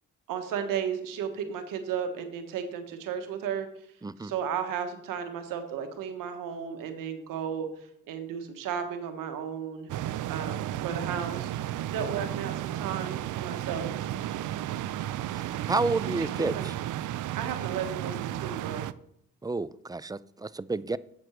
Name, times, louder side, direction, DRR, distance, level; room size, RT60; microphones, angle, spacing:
voice 1, 0.3-3.7 4.2-9.9 10.3-11.5 11.9-14.0 16.2-16.7 17.3-18.8, right 7 dB, 85° right, 7 dB, 1.3 m, -34 dB
voice 2, 4.0-4.3 15.3-15.4 15.7-16.7 19.4-21.0, right 3 dB, 10° right, 17 dB, 0.4 m, -30 dB
sound 1, 9.9-18.9, right 12 dB, 70° right, 0.5 m, -33 dB
8.0 x 7.6 x 4.5 m, 0.70 s
supercardioid pair, 60°, 32 cm